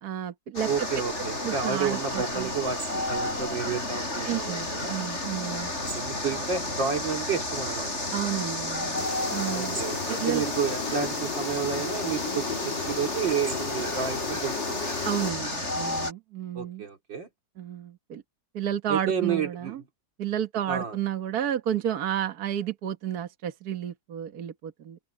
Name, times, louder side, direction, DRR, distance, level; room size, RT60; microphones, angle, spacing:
voice 1, 0.0-0.9 1.4-2.5 4.2-5.7 8.1-9.1 9.3-9.8 10.1-10.4 15.0-16.8 17.6-18.2 18.5-19.8 20.2-25.0, right 10 dB, 55° right, 1.7 m, -31 dB
sound 1, 0.6-16.1, left 2 dB, 35° left, 5.9 m, -32 dB
voice 2, 0.7-5.0 5.9-7.9 9.5-14.9 16.5-17.3 18.9-19.8 20.7-21.0, right 6 dB, 85° right, 3.5 m, -31 dB
sound 2, 8.9-15.3, left 5 dB, 70° left, 4.0 m, -35 dB
omnidirectional pair, 2.0 m